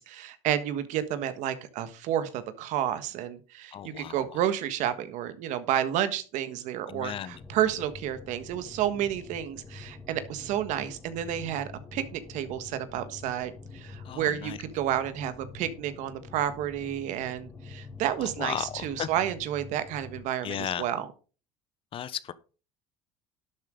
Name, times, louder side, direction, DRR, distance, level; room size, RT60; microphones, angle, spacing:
voice 1, 0.0-21.1, right 11 dB, 65° right, 1.5 m, -31 dB
voice 2, 3.7-4.2 6.9-7.4 14.0-14.6 18.2-19.1 20.4-20.9 21.9-22.3, left 10 dB, 40° left, 0.9 m, -35 dB
sound 1, 7.3-20.2, left 4 dB, 20° left, 2.4 m, -46 dB
11.5 x 8.8 x 3.8 m
supercardioid pair, 115°, 14 cm